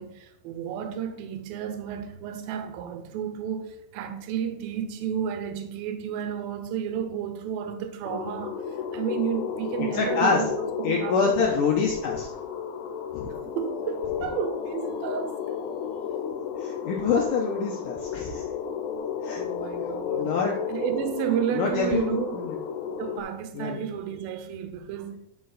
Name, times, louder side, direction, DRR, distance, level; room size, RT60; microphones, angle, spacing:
voice 1, 0.0-11.4 13.3-15.4 19.4-20.3 20.7-22.4 22.9-25.2, right 9 dB, 80° right, 2.6 m, -32 dB
sound 1, 8.0-23.2, left 7 dB, 90° left, 2.7 m, -33 dB
voice 2, 9.9-10.4 10.8-12.3 13.1-13.3 16.6-18.4 19.2-19.4 20.1-20.6 21.5-22.6 23.5-23.8, left 5 dB, 70° left, 2.3 m, -26 dB
10.0 x 5.3 x 4.0 m
omnidirectional pair, 4.3 m